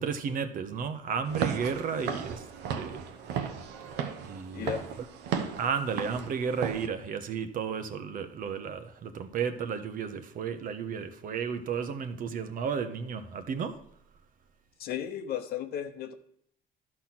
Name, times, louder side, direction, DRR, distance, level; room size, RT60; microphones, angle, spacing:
voice 1, 0.0-2.4 2.7-3.0 4.2-4.7 5.6-13.8, right 6 dB, 55° right, 0.9 m, -33 dB
Walk footsteps / Siren, 1.2-6.9, right 7 dB, 85° right, 0.9 m, -35 dB
voice 2, 4.5-4.9 14.8-16.1, left 9 dB, 65° left, 0.9 m, -35 dB
12.0 x 4.4 x 5.9 m
cardioid pair, 110°, 17 cm